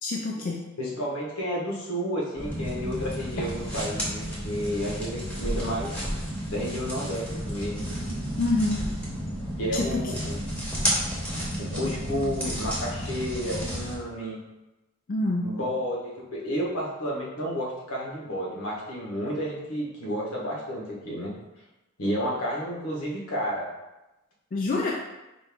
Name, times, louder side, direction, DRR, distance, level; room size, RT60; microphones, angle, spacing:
voice 1, 0.0-0.6 8.4-8.8 9.7-10.0 15.1-15.5 24.5-24.9, left 2 dB, 40° left, -1 dB, 0.4 m, -26 dB
voice 2, 0.8-6.0 6.5-7.8 9.6-10.4 11.6-14.4 15.4-21.3 22.0-23.7, equal, 80° left, -3 dB, 1.2 m, -31 dB
sound 1, 2.3-14.0, equal, 5° left, 0.9 m, -32 dB
4.4 x 2.5 x 3.5 m, 0.99 s
head